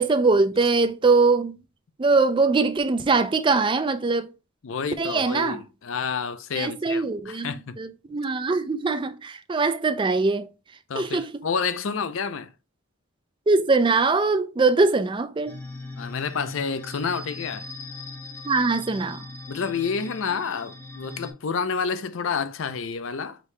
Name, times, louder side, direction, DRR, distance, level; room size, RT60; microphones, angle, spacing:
voice 1, 0.0-1.6 2.0-4.3 5.0-5.6 6.5-7.5 7.8-10.5 11.0-11.3 13.5-15.5 18.4-19.2, right 3 dB, 20° right, 0.3 m, -22 dB
voice 2, 4.6-7.8 10.9-12.5 16.0-17.7 19.5-23.4, left 5 dB, 60° left, 0.5 m, -29 dB
sound 1, 15.5-21.3, left 2 dB, 10° left, 0.7 m, -40 dB
5.1 x 2.7 x 3.2 m
head